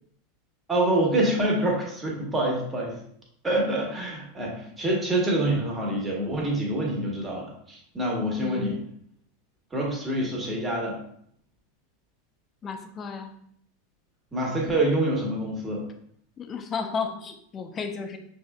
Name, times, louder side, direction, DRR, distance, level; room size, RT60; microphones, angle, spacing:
voice 1, 0.7-2.9 3.4-8.8 9.7-11.0 14.3-15.9, right 1 dB, 20° right, -2 dB, 1.4 m, -26 dB
voice 2, 8.4-8.8 12.6-13.3 16.4-18.2, left 5 dB, 30° left, 6 dB, 0.6 m, -33 dB
6.3 x 3.5 x 2.2 m, 0.66 s
figure-of-eight pair, 85°, 0 cm